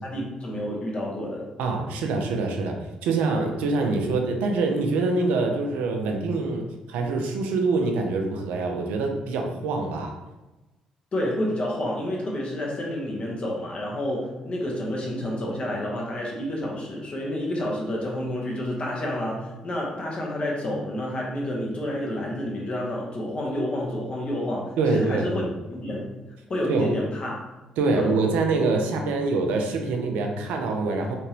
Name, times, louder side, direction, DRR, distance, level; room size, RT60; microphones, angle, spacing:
voice 1, 0.0-1.5 11.1-25.4 25.7-26.0 26.5-27.5 27.9-28.2, left 1 dB, 45° left, -2 dB, 1.1 m, -29 dB
voice 2, 1.6-2.8 3.0-10.2 24.8-25.5 26.7-27.0 27.8-31.2, right 3 dB, 75° right, 3 dB, 0.5 m, -25 dB
3.4 x 2.8 x 3.1 m, 1.1 s
hypercardioid pair, 50°, 3 cm